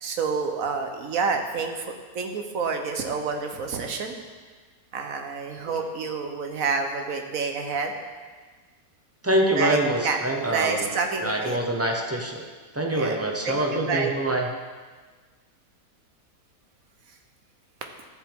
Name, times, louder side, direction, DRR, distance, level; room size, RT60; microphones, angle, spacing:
voice 1, 0.0-4.1 4.9-7.9 9.5-11.6 12.9-13.2 13.4-14.1, right 5 dB, 65° right, 4 dB, 1.3 m, -28 dB
voice 2, 9.2-10.9 11.2-12.5 12.7-14.5, right 1 dB, 10° right, 1 dB, 0.8 m, -25 dB
13.5 x 7.5 x 3.6 m, 1.4 s
omnidirectional pair, 1.6 m